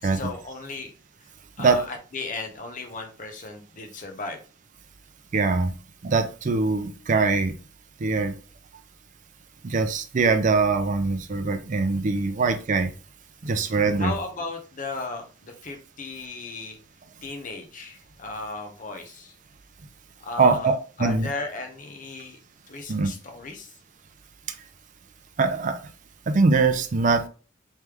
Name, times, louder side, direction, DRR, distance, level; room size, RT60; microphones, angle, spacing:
voice 1, 0.0-0.9 1.2-1.3 1.6-4.4 13.4-13.6 14.0-16.8 17.2-19.4 20.2-22.4 22.7-23.7, left 3 dB, 45° left, 4 dB, 0.8 m, -35 dB
voice 2, 5.3-5.7 6.0-7.5 8.0-8.3 9.6-12.9 13.4-14.1 20.4-20.7 21.0-21.3 22.9-23.1 25.4-25.8 26.3-27.3, right 4 dB, 45° right, 8 dB, 0.4 m, -22 dB
3.2 x 3.1 x 3.4 m, 0.37 s
head